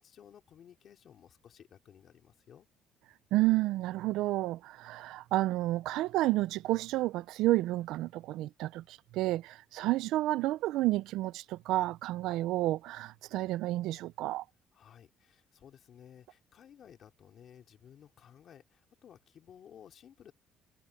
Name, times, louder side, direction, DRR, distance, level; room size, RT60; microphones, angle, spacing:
voice 1, 0.0-2.7 14.7-20.3, left 9 dB, 45° left, 3.6 m, -56 dB
voice 2, 3.3-14.4, right 17 dB, 80° right, 0.5 m, -30 dB
cardioid pair, 150°, 0 cm